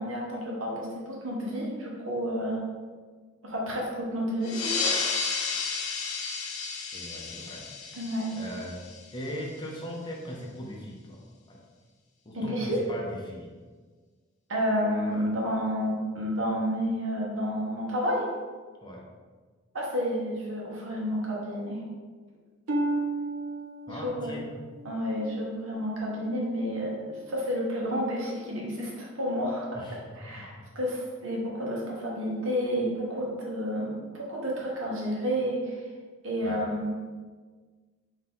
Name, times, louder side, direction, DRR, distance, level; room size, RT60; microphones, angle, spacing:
voice 1, 0.0-2.6 3.4-4.9 7.9-8.3 12.3-12.8 14.5-18.3 19.7-21.8 23.9-24.3 24.8-29.7 30.2-35.9 36.2-36.9, equal, 70° right, -3 dB, 1.0 m, -30 dB
sound 1, 4.4-9.5, left 4 dB, 75° left, 0.5 m, -32 dB
voice 2, 6.9-7.6 8.3-8.8 9.1-11.2 11.5-11.6 12.2-13.5 15.1-15.3 18.8-19.1 23.9-24.5 29.7-30.0 30.3-30.4 36.4-36.6, equal, 20° left, -2 dB, 0.7 m, -39 dB
Harp, 22.7-26.4 27.0-27.4 28.0-28.1, right 2 dB, 85° right, 0.5 m, -34 dB
3.9 x 2.8 x 3.7 m, 1.5 s
head